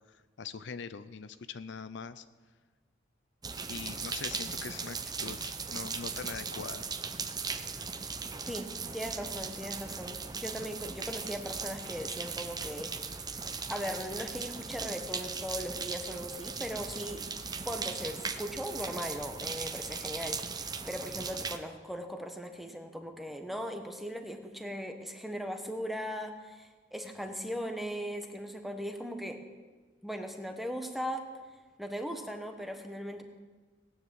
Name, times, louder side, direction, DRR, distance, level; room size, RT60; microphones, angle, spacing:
voice 1, 0.1-2.2 3.7-6.9, left 5 dB, 65° left, 13 dB, 0.6 m, -42 dB
sound 1, 3.4-21.6, right 5 dB, 20° right, 0.7 m, -38 dB
voice 2, 8.9-12.9 13.7-17.2 17.6-29.4 30.0-31.2 31.8-33.2, equal, ahead, 5 dB, 1.3 m, -38 dB
18.0 x 9.7 x 7.7 m, 1.4 s
head